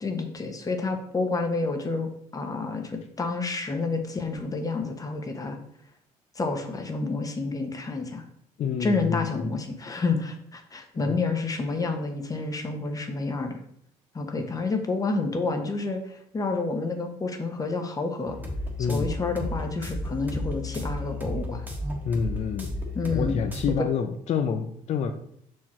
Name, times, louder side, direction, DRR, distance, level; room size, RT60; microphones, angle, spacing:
voice 1, 0.0-5.6 6.4-8.2 8.8-13.6 14.1-18.4 18.8-21.7 22.9-23.4, left 3 dB, 25° left, 5 dB, 1.0 m, -29 dB
voice 2, 8.6-9.5 11.0-11.2 18.8-19.1 22.1-22.7 23.1-25.1, left 6 dB, 50° left, 6 dB, 0.6 m, -28 dB
sound 1, 18.3-23.7, left 1 dB, 10° right, 1.4 m, -33 dB
6.0 x 4.8 x 4.2 m, 0.68 s
cardioid pair, 110°, 14 cm